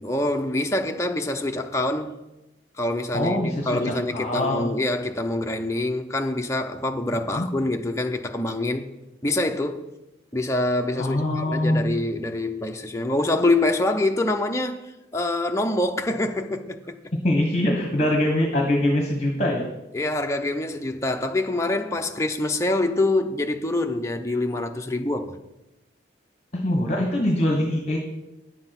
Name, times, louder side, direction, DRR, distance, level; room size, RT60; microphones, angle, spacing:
voice 1, 0.0-2.2 2.8-8.9 9.2-9.9 10.3-14.9 15.1-17.0 19.9-25.4, left 2 dB, 15° left, 0.7 m, -25 dB
voice 2, 3.1-4.7 7.3-7.5 11.0-11.8 17.2-19.7 26.5-28.0, left 1 dB, 35° left, 1.3 m, -23 dB
9.8 x 7.6 x 5.9 m
head